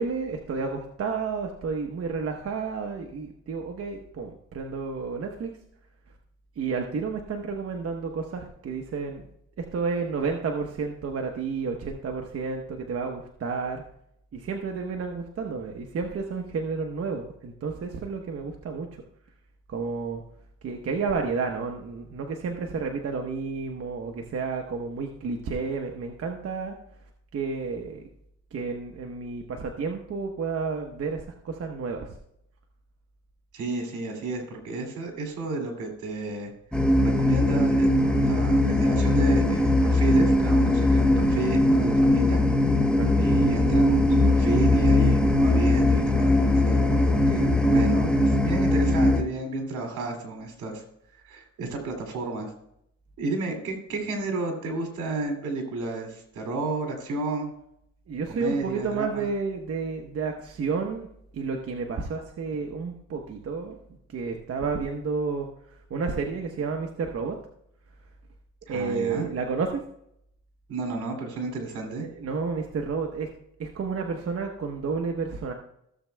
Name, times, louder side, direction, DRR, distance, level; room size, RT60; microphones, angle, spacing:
voice 1, 0.0-5.5 6.6-9.2 9.6-13.8 14.3-19.0 19.7-20.2 20.6-26.7 27.3-28.1 28.5-32.1 42.9-43.2 58.1-63.8 64.1-65.5 65.9-67.4 68.7-69.8 72.0-73.3 73.6-75.5, right 4 dB, 50° right, 2 dB, 1.0 m, -31 dB
voice 2, 33.5-36.5 37.0-42.4 43.2-50.8 51.2-52.5 53.2-57.5 58.3-59.3 68.7-69.3 70.7-72.1, right 3 dB, 80° right, 3 dB, 2.6 m, -32 dB
sound 1, 36.7-49.2, left 1 dB, 5° left, 1.0 m, -20 dB
16.0 x 7.2 x 2.3 m, 0.75 s
cardioid pair, 90°, 30 cm